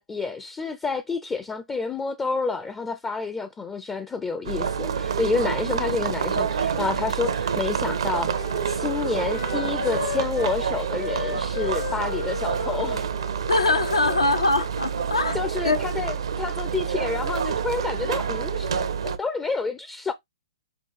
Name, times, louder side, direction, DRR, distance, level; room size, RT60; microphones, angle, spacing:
voice 1, 0.0-13.0 15.3-20.1, left 4 dB, 10° left, 0.4 m, -29 dB
sound 1, 4.4-19.2, right 7 dB, 70° right, 0.7 m, -27 dB
Wind instrument woodwind instrument, 6.6-10.6 11.0-15.4, left 6 dB, 65° left, 1.1 m, -36 dB
voice 2, 13.5-15.4 15.6-15.8, left 3 dB, 90° left, 0.7 m, -22 dB
5.6 x 2.3 x 3.7 m
hypercardioid pair, 125°, 3 cm